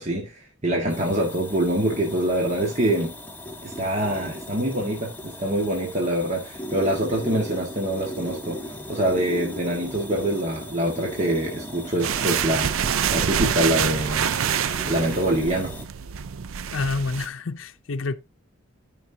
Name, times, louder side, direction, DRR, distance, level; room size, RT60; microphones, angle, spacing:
voice 1, 0.0-3.1 3.6-12.8 13.1-14.4 14.9-15.7, right 1 dB, 35° right, 1.8 m, -25 dB
sound 1, 0.9-15.9, equal, 10° left, 1.4 m, -37 dB
sound 2, 12.0-17.3, right 8 dB, 80° right, 0.5 m, -26 dB
voice 2, 16.7-18.1, left 3 dB, 70° left, 0.7 m, -28 dB
13.5 x 5.5 x 2.8 m
head